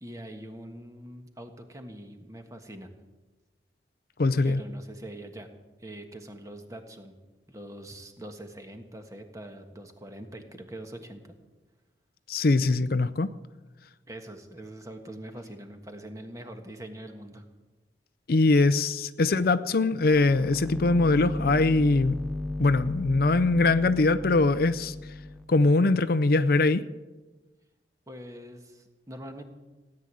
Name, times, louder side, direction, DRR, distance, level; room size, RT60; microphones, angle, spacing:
voice 1, 0.0-2.9 4.4-5.5 5.8-7.1 7.5-11.2 14.1-17.4 28.1-29.4, right 1 dB, 20° right, 5 dB, 1.5 m, -43 dB
voice 2, 4.2-4.6 12.3-13.3 18.3-22.2 22.6-24.9 25.5-26.8, left 3 dB, 55° left, 13 dB, 0.5 m, -22 dB
sound 1, 20.1-25.4, left 2 dB, 5° left, 0.7 m, -35 dB
17.0 x 9.8 x 7.7 m, 1.2 s
head